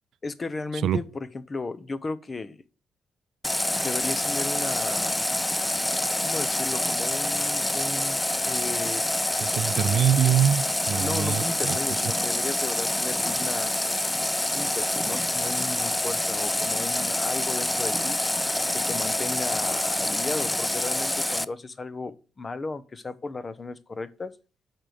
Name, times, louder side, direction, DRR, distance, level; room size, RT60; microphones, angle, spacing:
voice 1, 0.2-2.6 3.8-5.2 6.2-9.0 11.0-13.7 14.4-18.2 18.7-24.3, left 3 dB, 25° left, 0.9 m, -35 dB
Water tap faucet, 3.4-21.5, left 1 dB, 10° left, 0.4 m, -27 dB
voice 2, 9.4-11.8, right 9 dB, 70° right, 0.4 m, -24 dB
8.8 x 6.3 x 5.1 m
cardioid pair, 130°, 0 cm